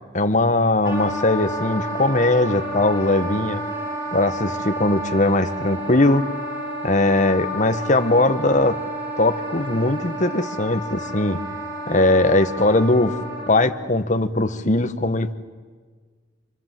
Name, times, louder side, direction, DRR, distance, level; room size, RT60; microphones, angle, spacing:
voice 1, 0.1-3.6 4.1-6.2 6.8-8.8 9.2-11.4 11.9-13.2 13.5-15.3, left 2 dB, 40° left, 9 dB, 1.4 m, -20 dB
Wind instrument woodwind instrument, 0.8-13.7, right 1 dB, 15° right, 6.7 m, -30 dB
28.5 x 25.5 x 7.7 m, 1.5 s
head